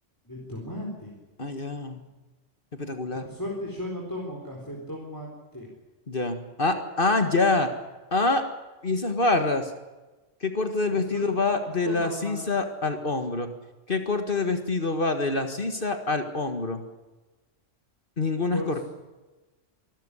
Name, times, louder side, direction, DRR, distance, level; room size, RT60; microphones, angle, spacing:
voice 1, 0.2-1.2 3.2-5.7 10.9-11.6 11.8-12.4 18.5-18.8, left 1 dB, 15° left, -2 dB, 4.2 m, -36 dB
voice 2, 1.4-2.0 2.8-3.3 6.1-7.7 8.1-8.4 8.8-9.7 10.4-13.5 13.9-16.8 18.2-18.8, left 3 dB, 45° left, 7 dB, 1.9 m, -26 dB
25.5 x 13.0 x 10.0 m, 1.2 s
omnidirectional pair, 1.3 m